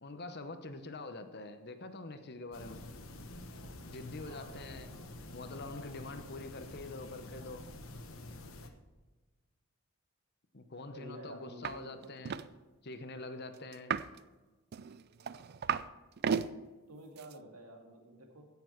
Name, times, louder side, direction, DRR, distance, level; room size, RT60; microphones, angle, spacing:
voice 1, 0.0-2.8 3.9-5.0 5.3-7.6 10.5-12.4 12.8-13.9, left 2 dB, 50° left, 8 dB, 0.9 m, -45 dB
sound 1, 2.5-8.7, left 2 dB, 70° left, 1.2 m, -48 dB
voice 2, 4.3-5.2 10.9-12.1 16.9-18.5, right 1 dB, 90° right, 1 dB, 2.4 m, -50 dB
sound 2, 11.6-11.8 12.0-12.5 13.7-14.2 14.7-15.9 16.2-16.5 17.2-17.3, right 7 dB, 45° right, 0.4 m, -34 dB
16.5 x 7.0 x 4.5 m, 1.3 s
head